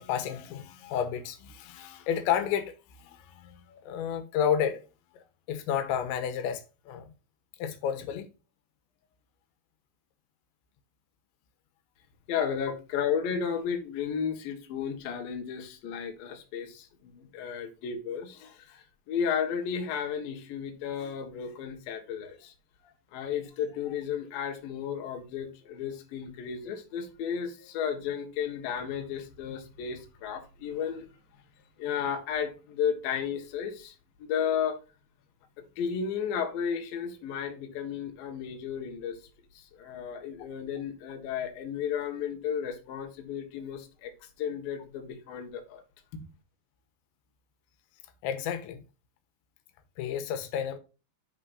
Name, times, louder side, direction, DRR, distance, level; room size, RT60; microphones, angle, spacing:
voice 1, 0.0-2.7 3.0-4.8 5.2-7.1 7.6-8.3 48.2-48.8 50.0-50.8, left 8 dB, 90° left, 3.3 m, -31 dB
voice 2, 12.3-22.5 23.1-31.1 31.8-33.9 34.2-34.8 35.6-39.2 39.5-45.8 46.1-46.2, left 7 dB, 60° left, 2.9 m, -33 dB
14.0 x 4.8 x 2.6 m
omnidirectional pair, 5.1 m